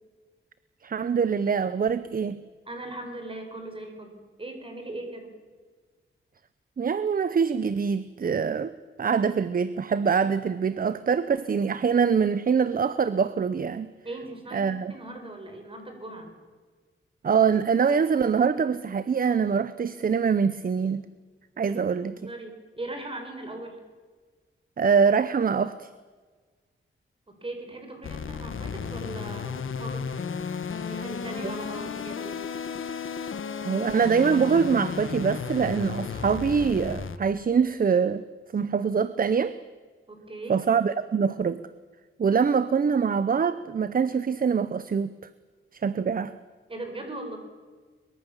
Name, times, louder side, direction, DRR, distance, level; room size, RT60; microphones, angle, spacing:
voice 1, 0.8-2.4 6.8-8.7 9.0-13.9 14.5-14.9 17.2-21.0 21.6-22.3 24.8-25.9 31.4-31.5 33.6-38.2 38.5-39.5 40.5-41.6 42.2-45.2 45.7-46.3, right 6 dB, 45° right, 14 dB, 0.7 m, -24 dB
voice 2, 2.7-5.3 14.0-16.3 21.7-23.8 27.3-30.1 30.7-32.4 40.1-40.6 46.7-47.4, right 2 dB, 25° right, 4 dB, 4.8 m, -39 dB
sound 1, 28.0-37.2, left 6 dB, 70° left, 1.4 m, -34 dB
23.5 x 22.0 x 7.2 m, 1.5 s
wide cardioid pair, 165°, 21 cm